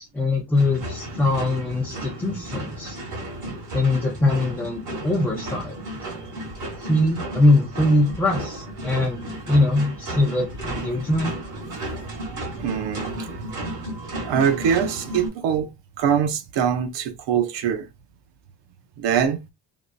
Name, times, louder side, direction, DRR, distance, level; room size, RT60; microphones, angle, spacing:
voice 1, 0.0-3.0 3.7-5.8 6.8-11.3, left 2 dB, 5° left, 0.4 m, -22 dB
sound 1, 0.6-15.3, right 1 dB, 40° right, 1.9 m, -33 dB
voice 2, 12.5-13.3 14.2-15.7 16.0-17.9 19.0-19.4, right 8 dB, 65° right, 0.6 m, -23 dB
3.5 x 2.5 x 2.5 m
cardioid pair, 170°, 47 cm